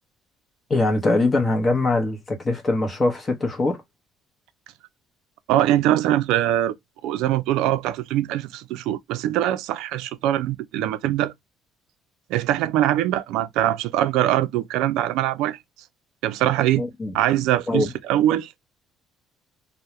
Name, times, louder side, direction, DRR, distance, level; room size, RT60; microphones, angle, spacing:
voice 1, 0.7-3.8 16.8-17.2 17.7-17.9, left 2 dB, 25° left, 0.8 m, -22 dB
voice 2, 5.5-6.7 7.0-11.3 12.3-15.6 16.2-16.8 17.1-18.6, right 13 dB, 90° right, 0.3 m, -22 dB
2.2 x 2.0 x 2.9 m
cardioid pair, 145°, 0 cm